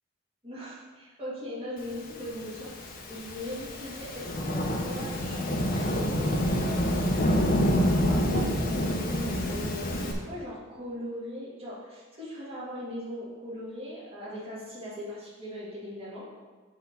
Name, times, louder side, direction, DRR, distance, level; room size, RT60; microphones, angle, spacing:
voice 1, 0.4-7.3 8.0-16.2, equal, 30° right, -8 dB, 2.2 m, -40 dB
Thunderstorm / Rain, 2.4-10.1, equal, 45° left, 0.9 m, -27 dB
7.9 x 3.7 x 5.6 m, 1.3 s
head